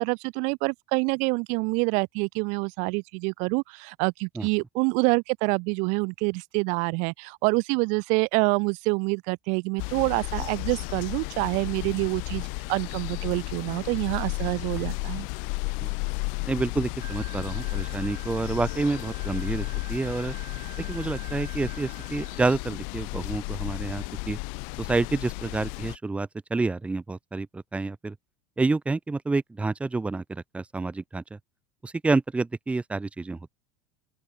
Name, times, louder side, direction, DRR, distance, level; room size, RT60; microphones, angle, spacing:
voice 1, 0.0-15.3, right 33 dB, 55° right, 0.8 m, -26 dB
sound 1, 9.8-26.0, left 38 dB, 60° left, 3.8 m, -33 dB
voice 2, 16.5-20.3 20.9-24.4 24.8-28.1 28.6-31.4 31.8-33.6, right 3 dB, 10° right, 1.5 m, -28 dB
Wind instrument woodwind instrument, 17.0-22.5, right 9 dB, 25° right, 2.2 m, -47 dB
open air
cardioid pair, 165°, 15 cm